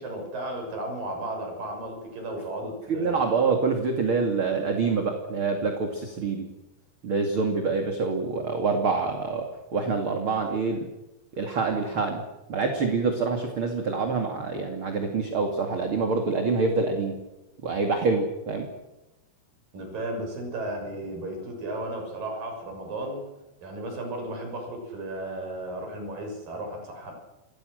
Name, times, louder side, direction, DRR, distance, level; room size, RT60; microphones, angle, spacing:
voice 1, 0.0-3.2 19.7-23.2 23.6-27.1, right 1 dB, 65° right, 2 dB, 8.1 m, -34 dB
voice 2, 2.9-6.5 7.0-9.5 9.7-10.9 11.4-12.2 12.5-17.1 17.6-18.7, right 4 dB, 40° right, 4 dB, 3.0 m, -26 dB
28.5 x 21.0 x 6.6 m, 1.0 s
omnidirectional pair, 4.2 m